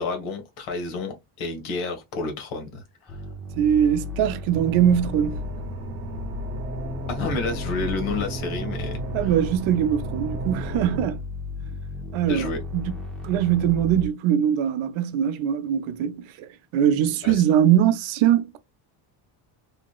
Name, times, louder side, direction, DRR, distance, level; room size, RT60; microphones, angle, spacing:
voice 1, 0.0-3.2 7.1-9.3 12.3-12.6 17.2-17.4, left 3 dB, 70° left, 1.4 m, -30 dB
sound 1, 3.1-14.1, left 3 dB, ahead, 0.3 m, -35 dB
voice 2, 3.6-5.4 9.1-11.2 12.1-12.9 13.2-18.6, right 10 dB, 70° right, 0.7 m, -22 dB
sound 2, 4.5-11.0, right 2 dB, 25° right, 0.7 m, -34 dB
3.5 x 2.9 x 2.3 m
cardioid pair, 180°, 50 cm